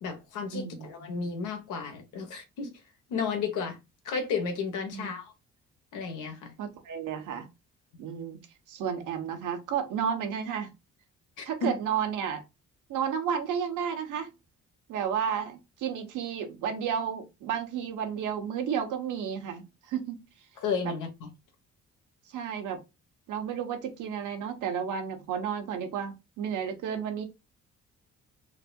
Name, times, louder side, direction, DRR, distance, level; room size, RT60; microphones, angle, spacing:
voice 1, 0.0-2.7 3.1-3.8 4.0-5.3 5.9-6.5 11.4-11.7 20.6-21.3, left 5 dB, 90° left, 1.1 m, -33 dB
voice 2, 0.5-1.1 4.9-5.2 6.6-7.5 8.0-8.4 8.7-10.7 11.4-12.4 12.9-14.3 14.9-20.2 20.8-20.9 22.3-22.8 23.3-27.2, right 8 dB, 80° right, 1.0 m, -32 dB
3.9 x 2.7 x 2.2 m
cardioid pair, 90°, 30 cm